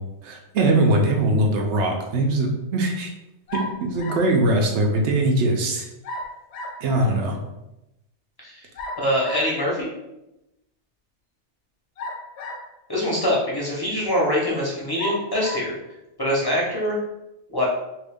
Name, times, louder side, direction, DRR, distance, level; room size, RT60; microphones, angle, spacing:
voice 1, 0.2-3.1 3.5-5.9 6.8-7.3, right 2 dB, 75° right, 2 dB, 0.9 m, -21 dB
sound 1, 3.5-4.3 6.0-6.9 8.8-9.6 12.0-12.8 13.6-13.7 15.0-15.7, left 1 dB, 70° left, 0.8 m, -34 dB
voice 2, 9.0-9.9 12.9-15.7 16.2-17.0 17.5-17.7, equal, 20° left, -4 dB, 0.8 m, -24 dB
3.0 x 2.7 x 3.4 m, 0.91 s
omnidirectional pair, 1.2 m